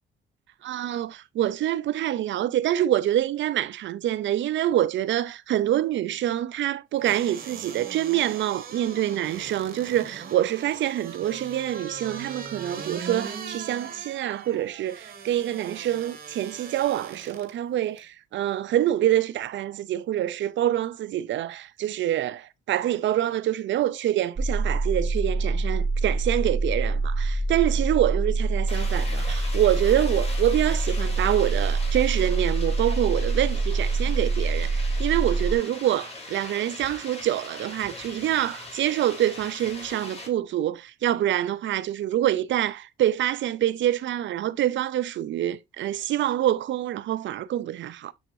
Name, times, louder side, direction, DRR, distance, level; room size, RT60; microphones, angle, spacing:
voice 1, 0.6-48.1, right 12 dB, 70° right, 0.7 m, -26 dB
sound 1, 7.0-17.5 18.0-18.1, right 6 dB, 50° right, 2.0 m, -40 dB
sound 2, 24.4-35.5, right 3 dB, 30° right, 2.3 m, -25 dB
sound 3, 28.7-40.3, left 2 dB, 30° left, 3.2 m, -40 dB
7.0 x 6.4 x 2.6 m
cardioid pair, 90°, 20 cm